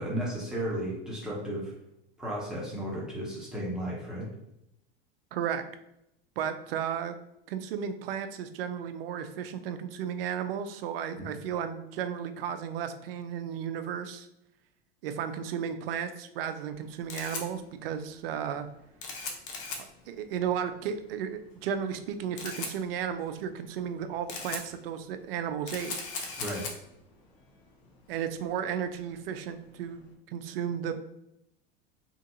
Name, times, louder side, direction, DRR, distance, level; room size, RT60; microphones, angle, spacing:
voice 1, 0.0-1.7 2.2-4.3 11.2-11.3 26.4-26.7, right 1 dB, ahead, -5 dB, 1.1 m, -34 dB
voice 2, 5.3-5.6 6.4-7.1 7.5-14.3 15.0-18.7 20.1-25.9 28.1-30.0 30.3-31.0, right 8 dB, 70° right, 9 dB, 0.5 m, -34 dB
Camera, 16.7-30.1, left 4 dB, 55° left, 0.8 m, -42 dB
2.8 x 2.5 x 2.6 m, 0.80 s
hypercardioid pair, 90°, 30 cm